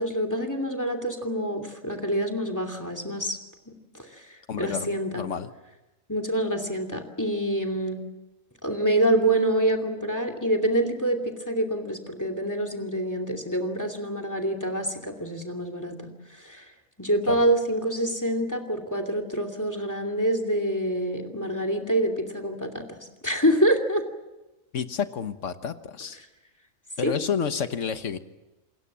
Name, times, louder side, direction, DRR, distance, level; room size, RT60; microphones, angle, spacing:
voice 1, 0.0-3.4 3.7-4.3 4.6-5.3 6.1-8.0 8.6-16.6 17.0-24.0 27.0-27.1, right 1 dB, 15° left, 6 dB, 2.7 m, -26 dB
voice 2, 4.5-4.9 5.1-5.5 17.3-17.4 24.7-26.2 27.0-28.2, left 7 dB, 65° left, 10 dB, 1.5 m, -30 dB
28.0 x 21.0 x 7.5 m, 1.1 s
omnidirectional pair, 1.4 m